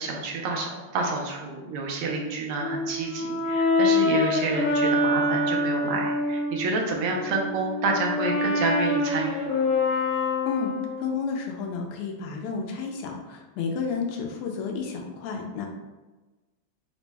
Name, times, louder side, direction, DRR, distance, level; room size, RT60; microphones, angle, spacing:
voice 1, 0.0-9.4, right 3 dB, 85° right, 1 dB, 1.6 m, -29 dB
Brass instrument, 2.6-6.6 7.1-11.2, left 2 dB, 70° left, 1.7 m, -25 dB
voice 2, 11.0-15.7, left 5 dB, 85° left, 1 dB, 1.6 m, -31 dB
4.3 x 2.0 x 3.3 m, 1.2 s
omnidirectional pair, 2.4 m